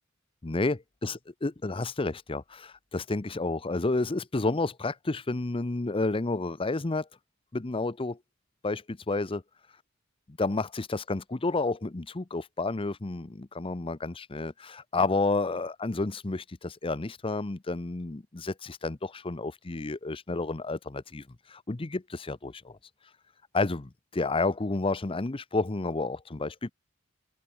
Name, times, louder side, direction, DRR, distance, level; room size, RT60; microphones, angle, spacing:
voice 1, 0.4-7.1 7.5-8.2 8.6-9.4 10.3-21.2 21.5-22.8 23.5-26.7, left 3 dB, 25° left, 0.7 m, -30 dB
open air
head